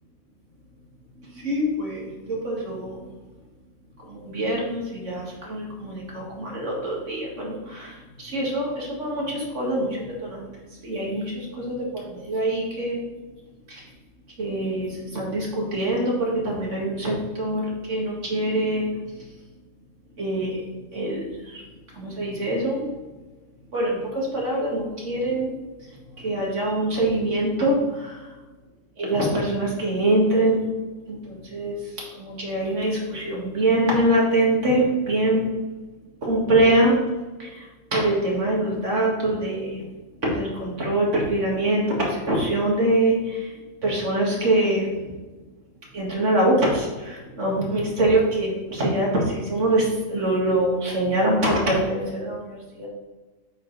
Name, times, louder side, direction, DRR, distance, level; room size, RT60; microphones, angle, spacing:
voice 1, 1.4-3.0 4.1-10.5 10.8-13.0 13.7-13.8 14.4-18.9 20.2-20.6 20.9-21.6 21.9-22.9 23.7-25.5 26.2-28.1 29.0-30.6 31.1-31.8 32.2-35.5 36.2-36.9 37.4-37.6 37.9-39.8 40.2-43.5 43.8-45.1 45.9-52.9, right 1 dB, 60° right, -3 dB, 2.2 m, -24 dB
8.1 x 5.0 x 4.0 m, 1.2 s
omnidirectional pair, 1.4 m